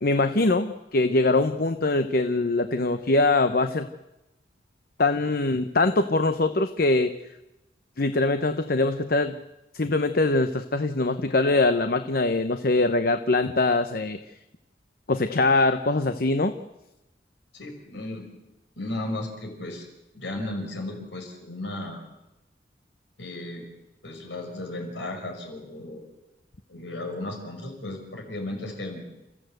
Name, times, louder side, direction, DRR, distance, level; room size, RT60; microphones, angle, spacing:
voice 1, 0.0-3.9 5.0-7.1 8.0-9.3 9.7-14.2 15.1-16.5, left 2 dB, 55° left, 9 dB, 0.9 m, -23 dB
voice 2, 17.5-18.3 18.8-19.9 20.1-22.0 23.2-23.7 24.0-26.1 26.7-29.0, left 1 dB, 80° left, 3 dB, 5.7 m, -35 dB
29.5 x 14.5 x 8.0 m, 0.98 s
head